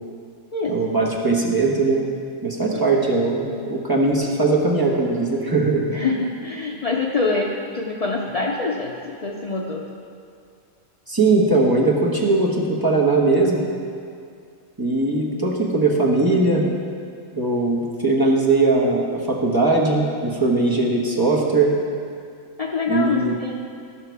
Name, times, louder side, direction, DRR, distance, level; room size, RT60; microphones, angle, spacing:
voice 1, 0.7-2.0 2.4-5.8 11.1-13.6 14.8-16.7 17.4-21.7 22.9-23.4, right 3 dB, 15° right, -4 dB, 1.1 m, -20 dB
voice 2, 5.9-9.8 22.6-23.6, left 3 dB, 65° left, -1 dB, 0.3 m, -25 dB
14.5 x 5.7 x 4.6 m, 2.3 s
omnidirectional pair, 1.5 m